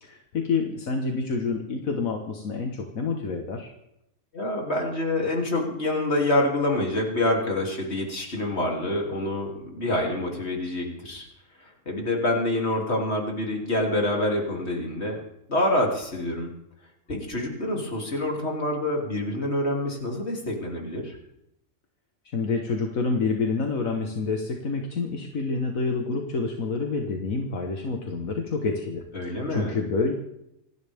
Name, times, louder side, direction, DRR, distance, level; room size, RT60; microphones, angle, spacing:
voice 1, 0.0-3.7 22.3-30.1, left 4 dB, 75° left, 3 dB, 1.9 m, -28 dB
voice 2, 4.3-11.3 11.6-15.2 15.5-16.5 17.1-21.2 29.1-29.7, left 1 dB, 50° left, 0 dB, 3.5 m, -26 dB
27.0 x 11.5 x 3.6 m, 0.80 s
omnidirectional pair, 1.4 m